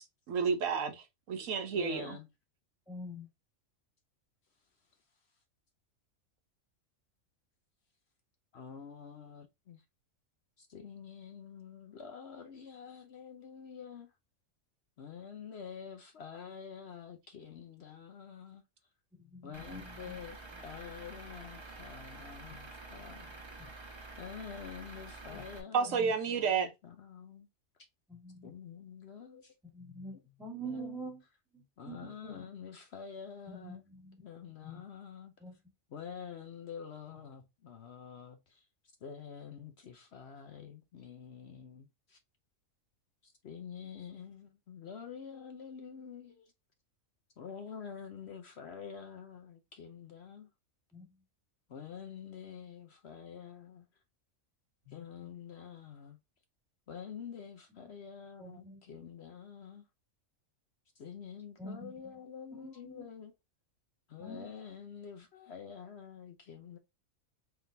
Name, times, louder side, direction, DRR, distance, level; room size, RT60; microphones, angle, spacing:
voice 1, 0.0-2.2 25.7-26.7, right 6 dB, 75° right, 1.1 m, -31 dB
voice 2, 1.7-2.3 8.5-9.8 10.6-14.1 15.0-18.6 19.4-22.6 22.9-23.3 24.2-26.0 26.3-27.5 28.4-29.5 30.6-31.0 31.8-33.8 34.2-35.3 35.9-38.7 39.0-42.2 43.2-46.5 47.4-50.5 51.7-53.9 54.9-56.2 56.9-59.9 61.0-63.3 64.1-66.8, left 7 dB, 60° left, 0.8 m, -47 dB
voice 3, 2.9-3.3 19.2-20.2 22.5-22.7 25.3-25.4 25.9-26.1 28.1-28.5 29.7-31.2 31.5-32.5 33.5-34.8 35.4-35.6 50.9-51.1 54.8-55.1 57.8-57.9 58.4-58.8 61.6-61.9 62.6-63.1 64.2-64.5, right 1 dB, ahead, 1.7 m, -46 dB
Truck / Idling, 19.5-25.6, right 3 dB, 25° right, 0.9 m, -48 dB
3.8 x 3.5 x 2.6 m
omnidirectional pair, 1.4 m